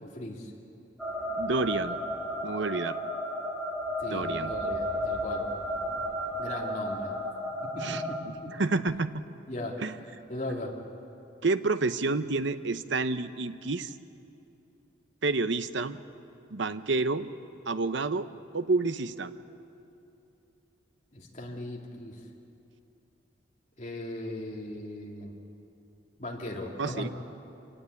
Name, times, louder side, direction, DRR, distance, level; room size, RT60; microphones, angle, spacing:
voice 1, 0.0-0.5 4.0-5.5 6.4-7.1 7.7-8.2 8.4-8.5 9.5-9.8 10.3-10.8 21.1-22.2 23.8-25.3 26.2-27.1, left 1 dB, 35° left, -1 dB, 3.0 m, -38 dB
sound 1, 1.0-8.2, equal, ahead, 2.9 m, -33 dB
voice 2, 1.4-2.0 2.4-3.0 4.1-4.5 7.8-8.0 8.5-9.1 9.8-9.9 11.4-14.0 15.2-16.0 16.5-17.3 17.7-18.3 18.5-19.3 26.8-27.1, right 3 dB, 70° right, 12 dB, 0.8 m, -29 dB
26.5 x 19.0 x 8.4 m, 2.8 s
head